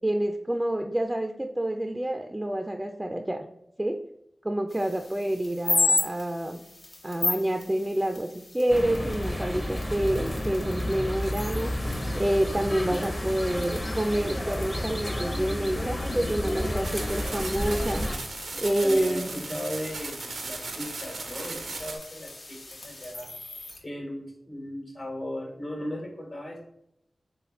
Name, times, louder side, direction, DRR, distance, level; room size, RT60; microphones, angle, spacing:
voice 1, 0.0-3.4 3.8-4.0 4.4-6.6 7.0-11.7 12.1-18.1 18.6-19.3, right 1 dB, 20° right, 5 dB, 0.3 m, -28 dB
sound 1, 4.7-23.8, left 3 dB, 70° left, 0.8 m, -36 dB
sound 2, 8.7-18.2, left 1 dB, 25° left, 0.7 m, -31 dB
sound 3, 16.8-22.0, right 3 dB, 85° right, 0.4 m, -37 dB
voice 2, 18.5-23.3 23.8-26.6, left 1 dB, 55° left, 0 dB, 1.3 m, -37 dB
3.2 x 3.2 x 3.0 m, 0.78 s
cardioid pair, 40°, 0 cm